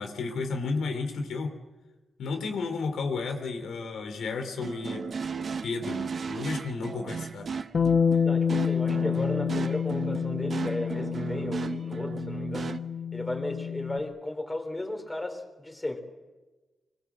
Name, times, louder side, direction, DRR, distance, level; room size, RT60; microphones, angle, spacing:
voice 1, 0.0-1.6 2.2-5.1 5.6-7.5, left 4 dB, 85° left, 5 dB, 3.4 m, -32 dB
sound 1, 4.6-12.8, right 5 dB, 50° right, 1.0 m, -35 dB
Bass guitar, 7.7-14.0, left 7 dB, 45° left, 1.6 m, -28 dB
voice 2, 8.2-12.8 13.1-16.0, left 1 dB, 15° left, 4 dB, 3.9 m, -35 dB
25.5 x 22.0 x 7.5 m, 1.2 s
cardioid pair, 105°, 0 cm